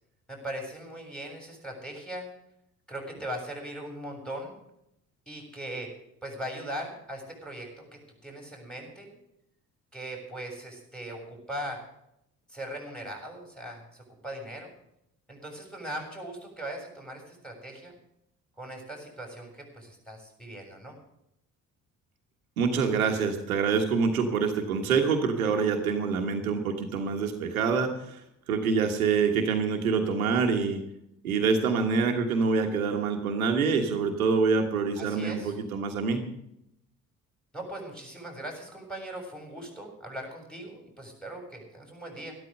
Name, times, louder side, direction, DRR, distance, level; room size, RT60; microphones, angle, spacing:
voice 1, 0.3-2.3 2.9-4.5 5.3-5.9 6.2-9.1 9.9-11.8 12.5-14.7 15.3-18.0 18.6-21.0 35.0-35.5 37.5-42.4, right 1 dB, ahead, 2 dB, 7.2 m, -39 dB
voice 2, 22.6-28.2 28.5-30.8 31.2-36.2, right 5 dB, 85° right, 4 dB, 1.5 m, -26 dB
13.0 x 12.5 x 6.7 m, 0.79 s
hypercardioid pair, 50°, 42 cm